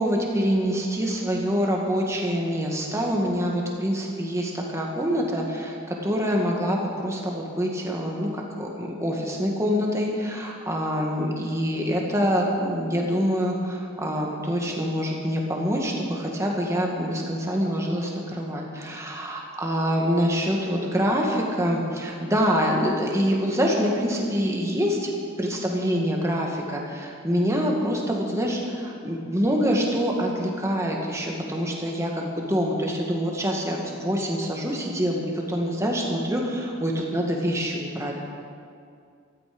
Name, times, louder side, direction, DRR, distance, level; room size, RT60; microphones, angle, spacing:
voice 1, 0.0-25.1 25.4-38.1, equal, 15° right, -1 dB, 1.8 m, -25 dB
14.5 x 13.5 x 5.3 m, 2.3 s
head